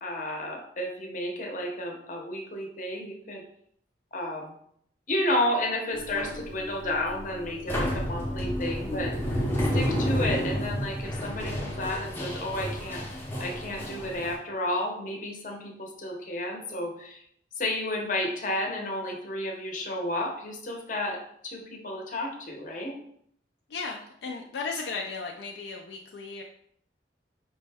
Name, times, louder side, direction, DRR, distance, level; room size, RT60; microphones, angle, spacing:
voice 1, 0.0-3.4 4.1-4.5 5.1-9.1 9.7-13.0 13.4-17.2 17.6-21.2 21.4-22.9, left 1 dB, 45° left, 0 dB, 0.7 m, -32 dB
sound 1, 5.9-14.3, equal, 10° left, 0.6 m, -31 dB
voice 2, 23.7-26.4, left 4 dB, 70° left, 1 dB, 0.4 m, -35 dB
5.0 x 2.1 x 3.3 m, 0.68 s
head